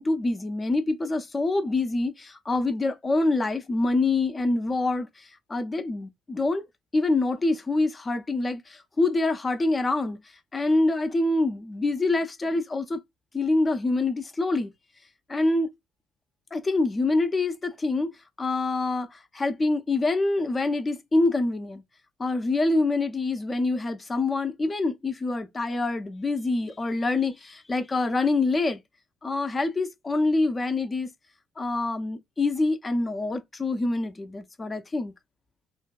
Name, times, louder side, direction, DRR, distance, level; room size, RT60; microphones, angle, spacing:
voice 1, 0.0-6.7 6.9-10.2 10.5-13.0 13.3-14.7 15.3-15.7 16.5-18.1 18.4-21.8 22.2-28.8 29.2-31.1 31.6-35.1, left 2 dB, 25° left, 0.5 m, -26 dB
2.6 x 2.1 x 2.3 m
figure-of-eight pair, 50°, 0 cm